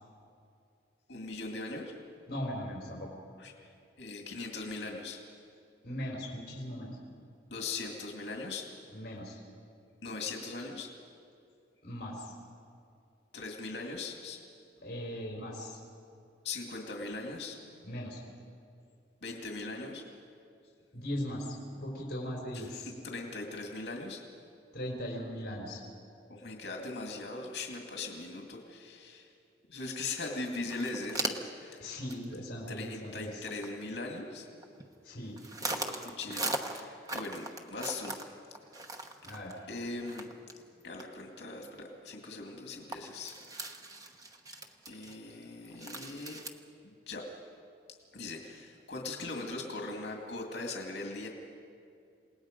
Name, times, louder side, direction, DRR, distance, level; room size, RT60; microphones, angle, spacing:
voice 1, 1.1-2.0 3.4-3.7 4.0-5.2 7.5-8.7 10.0-10.9 13.3-14.4 16.4-17.6 19.2-20.0 22.5-24.2 26.3-29.3 29.7-31.9 32.7-34.5 35.7-38.3 39.7-40.3 40.8-43.3 43.6-43.7 44.9-46.4 46.8-47.3 48.1-51.3, left 3 dB, 75° left, 1 dB, 2.2 m, -40 dB
voice 2, 2.3-3.1 5.8-7.0 8.9-9.4 11.8-12.3 14.8-15.8 17.8-18.2 20.9-21.6 21.8-22.9 24.7-25.8 31.8-33.4 35.0-35.4 39.2-39.7, equal, 55° left, -2 dB, 4.3 m, -39 dB
sound 1, 29.9-30.0 30.2-30.3 30.6-31.6 32.1-32.3 32.6-32.7 33.1-33.7 34.4-35.0 35.4-40.6 41.0-41.1 41.5-41.6 42.1-42.2 42.5-42.6 42.9-46.5, right 2 dB, 20° right, 1.0 m, -39 dB
28.5 x 18.5 x 5.2 m, 2.5 s
head